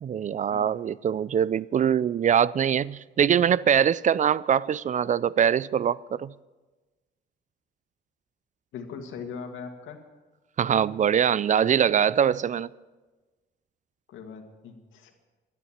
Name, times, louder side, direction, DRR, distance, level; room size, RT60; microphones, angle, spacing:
voice 1, 0.0-6.3 10.6-12.7, right 8 dB, 40° right, 0.4 m, -23 dB
voice 2, 8.7-10.0 14.1-15.3, left 6 dB, 80° left, 2.1 m, -40 dB
12.5 x 11.5 x 7.3 m
cardioid pair, 90°, 20 cm